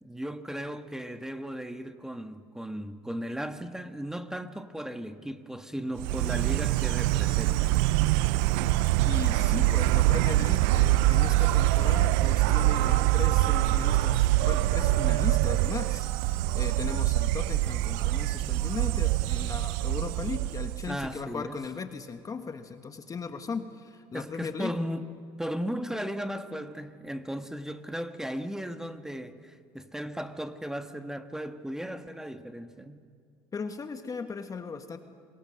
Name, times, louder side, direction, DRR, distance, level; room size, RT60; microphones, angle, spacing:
voice 1, 0.0-7.8 20.9-21.6 24.1-25.1 25.4-33.0, equal, 5° right, 1.4 m, -36 dB
Insect, 6.0-21.1, right 16 dB, 80° right, 0.5 m, -24 dB
voice 2, 9.0-24.8 33.5-35.0, left 5 dB, 30° left, 1.5 m, -37 dB
27.5 x 21.5 x 6.5 m
supercardioid pair, 80°, 11 cm